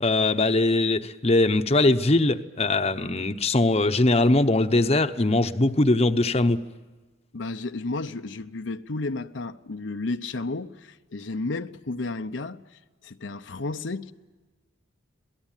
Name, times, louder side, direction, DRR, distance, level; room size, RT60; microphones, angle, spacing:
voice 1, 0.0-6.6, left 2 dB, 35° left, 0.9 m, -21 dB
voice 2, 7.3-14.1, left 3 dB, 75° left, 0.8 m, -32 dB
27.0 x 18.5 x 9.1 m
head